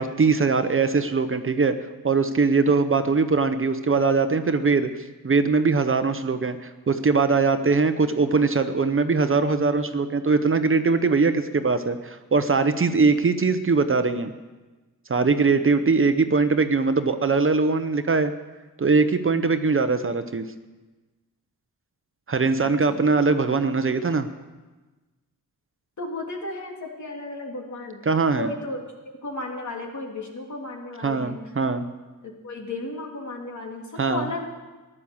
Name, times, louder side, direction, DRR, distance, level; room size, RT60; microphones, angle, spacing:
voice 1, 0.0-1.8 2.0-4.9 5.2-14.3 15.1-18.3 18.8-20.5 22.3-24.3 28.1-28.5 31.0-31.9 34.0-34.2, right 4 dB, 35° right, 9 dB, 0.8 m, -21 dB
voice 2, 8.3-8.6 22.6-23.0 26.0-28.0 28.3-28.8 29.0-31.4 32.2-34.5, left 2 dB, 55° left, 0 dB, 3.1 m, -34 dB
15.5 x 11.0 x 7.2 m, 1.2 s
wide cardioid pair, 100°, 35 cm